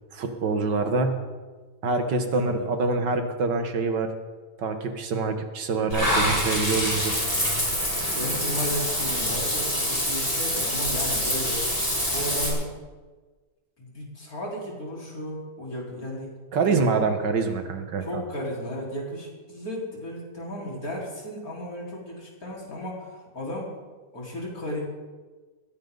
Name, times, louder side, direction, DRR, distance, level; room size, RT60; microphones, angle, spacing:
voice 1, 0.1-1.2 1.8-4.1 4.6-7.2 16.5-18.2, right 4 dB, 75° right, 6 dB, 2.1 m, -25 dB
voice 2, 2.3-2.7 8.1-11.6 12.1-12.7 13.8-16.3 16.6-16.9 18.0-23.7 24.1-24.8, equal, 55° left, -4 dB, 5.0 m, -34 dB
Water / Bathtub (filling or washing), 5.9-12.5, equal, 10° left, 5.5 m, -26 dB
21.0 x 16.5 x 4.0 m, 1.3 s
omnidirectional pair, 1.9 m